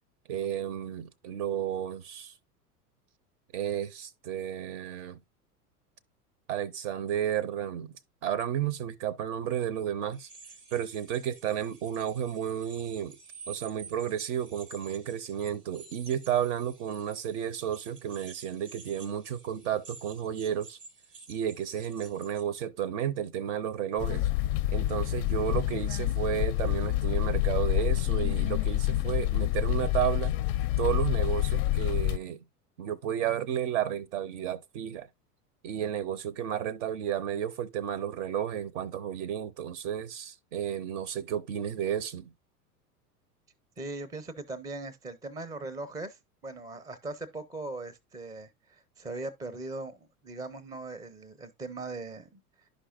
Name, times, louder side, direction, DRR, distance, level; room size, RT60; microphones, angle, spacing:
voice 1, 0.3-2.3 3.5-5.2 6.5-7.9 8.2-10.3 10.7-13.2 13.5-20.8 21.3-24.3 24.7-30.3 30.8-32.4 32.8-35.1 35.6-42.3, right 10 dB, 50° right, 0.7 m, -32 dB
sound 1, 10.1-22.4, right 4 dB, 85° right, 1.2 m, -51 dB
sound 2, 24.0-32.2, left 15 dB, 45° left, 0.4 m, -27 dB
voice 2, 43.8-52.4, right 2 dB, 10° right, 0.6 m, -40 dB
11.5 x 5.1 x 2.3 m
figure-of-eight pair, 85°, 46 cm